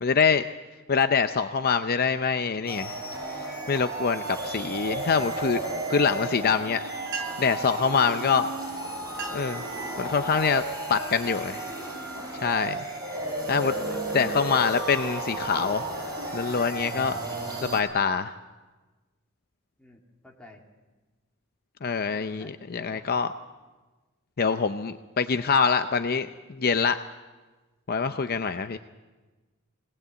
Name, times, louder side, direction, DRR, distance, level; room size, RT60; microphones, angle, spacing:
voice 1, 0.0-0.4 0.9-3.0 3.7-5.6 5.9-6.8 7.1-8.5 9.3-9.7 10.0-10.6 10.9-11.6 12.4-12.8 13.5-13.7 14.1-15.8 16.3-17.2 17.6-18.3 21.8-23.3 24.4-27.0 27.9-28.8, left 5 dB, 45° left, 9 dB, 0.6 m, -25 dB
sound 1, 2.7-17.8, right 2 dB, 20° right, 5.4 m, -33 dB
sound 2, 7.0-7.6 8.5-8.7 9.0-9.6 10.1-10.5 11.1-11.3 11.9-13.1, right 5 dB, 60° right, 2.6 m, -40 dB
voice 2, 11.2-11.7 12.2-12.5 13.2-14.2 19.8-20.0 20.2-20.6 22.1-23.0, left 1 dB, 5° left, -1 dB, 2.6 m, -50 dB
21.0 x 18.5 x 8.2 m, 1.2 s
head